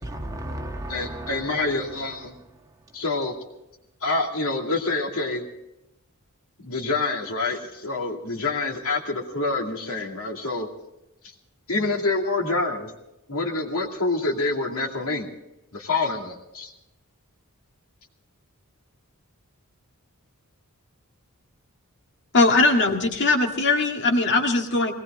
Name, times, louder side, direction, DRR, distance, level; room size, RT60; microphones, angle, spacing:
voice 1, 0.0-3.0, right 1 dB, 15° right, 2 dB, 1.5 m, -37 dB
voice 2, 0.9-2.3 2.9-3.3 4.0-5.4 6.6-10.7 11.7-12.9 13.3-15.3 15.7-16.7, left 3 dB, 70° left, 1 dB, 2.4 m, -27 dB
voice 3, 22.3-24.9, left 3 dB, 55° left, 3 dB, 1.9 m, -20 dB
20.0 x 18.5 x 3.7 m, 0.91 s
head